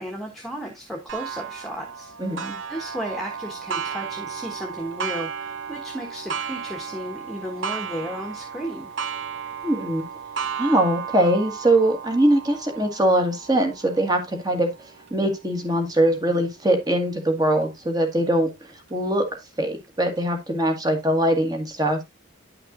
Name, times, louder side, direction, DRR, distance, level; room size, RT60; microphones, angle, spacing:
voice 1, 0.0-2.1 2.7-8.9, equal, ahead, 1.4 m, -34 dB
Clock, 1.1-16.4 17.0-17.1 17.6-17.7 18.7-18.8, right 6 dB, 70° right, 1.0 m, -34 dB
voice 2, 2.2-2.5 9.6-10.0 10.5-14.7 15.1-22.0, right 1 dB, 20° right, 1.7 m, -22 dB
10.5 x 5.8 x 2.5 m
head